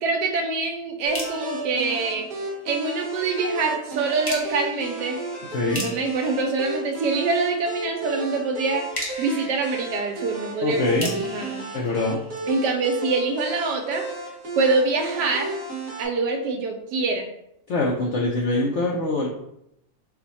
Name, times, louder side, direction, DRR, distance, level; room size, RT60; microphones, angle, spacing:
voice 1, 0.0-2.3 2.6-5.2 5.7-8.8 9.2-11.6 12.5-14.0 14.6-15.5 16.0-17.3, right 3 dB, 80° right, 4 dB, 1.2 m, -25 dB
sound 1, 1.1-2.9 4.2-7.6 8.9-12.8, left 1 dB, 20° left, 0.7 m, -38 dB
sound 2, 1.1-16.1, right 2 dB, 35° right, 1.2 m, -34 dB
voice 2, 5.5-5.8 10.6-11.1 11.7-12.2 17.7-19.3, left 2 dB, 75° left, -3 dB, 0.6 m, -23 dB
4.6 x 2.2 x 4.0 m, 0.79 s
omnidirectional pair, 1.9 m